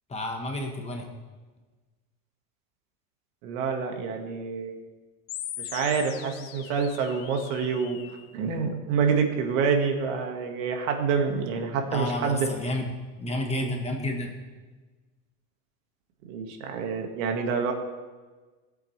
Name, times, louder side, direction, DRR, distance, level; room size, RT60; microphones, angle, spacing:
voice 1, 0.1-1.1 11.9-12.9 13.2-14.3, left 1 dB, 15° left, 2 dB, 1.3 m, -30 dB
voice 2, 3.4-4.8 5.6-8.0 8.3-12.5 16.3-17.7, right 5 dB, 80° right, 3 dB, 1.9 m, -27 dB
sound 1, 5.3-8.3, left 11 dB, 85° left, 1.1 m, -40 dB
17.0 x 8.2 x 3.3 m, 1.3 s
cardioid pair, 145°, 39 cm